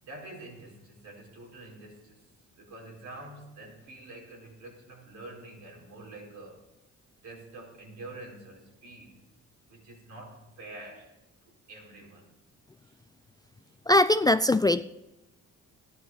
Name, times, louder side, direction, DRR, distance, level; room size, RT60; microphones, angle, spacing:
voice 1, 0.0-2.2 2.5-6.7 7.2-9.3 9.7-11.1 11.4-12.3 12.8-13.0 13.6-13.8, right 2 dB, 70° right, 4.5 m, -47 dB
voice 2, 13.9-14.8, left 1 dB, 15° left, 0.3 m, -21 dB
14.0 x 10.5 x 5.5 m
cardioid pair, 90°, 30 cm